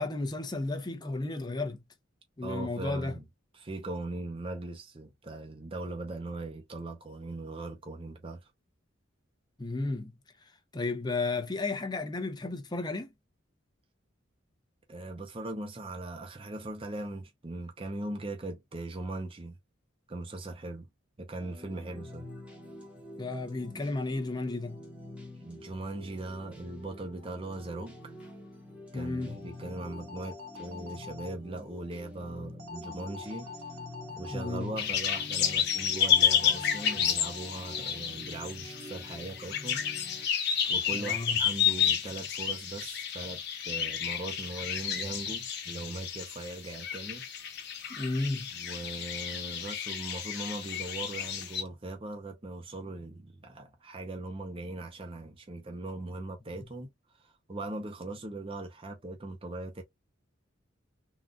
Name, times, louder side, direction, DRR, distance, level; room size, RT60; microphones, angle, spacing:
voice 1, 0.0-1.8 2.4-3.2 9.6-10.1 10.7-13.1 23.2-24.8 28.9-29.4 34.3-34.8 40.9-41.4 47.9-48.5, left 3 dB, 20° left, 0.7 m, -33 dB
voice 2, 2.4-3.2 3.5-8.5 14.9-19.6 20.1-20.9 21.2-22.3 25.4-28.1 28.9-33.5 34.2-40.2 40.7-47.2 48.5-56.9 57.2-59.8, right 2 dB, 30° right, 0.7 m, -40 dB
sound 1, 21.4-40.3, left 1 dB, 5° right, 0.9 m, -47 dB
sound 2, 29.4-31.3 32.6-34.6 36.0-38.0, left 5 dB, 80° right, 0.8 m, -45 dB
sound 3, 34.8-51.6, left 8 dB, 55° left, 0.9 m, -31 dB
3.8 x 2.4 x 2.3 m
head